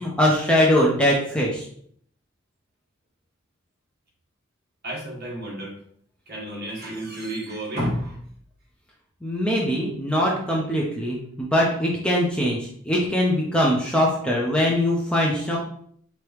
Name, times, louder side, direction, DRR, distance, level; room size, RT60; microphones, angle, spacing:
voice 1, 0.0-1.6 9.2-12.6 12.9-15.6, equal, 5° left, -4 dB, 0.6 m, -22 dB
voice 2, 4.8-5.8 6.3-8.2, right 1 dB, 50° right, -4 dB, 1.6 m, -31 dB
4.6 x 2.9 x 3.3 m, 0.62 s
head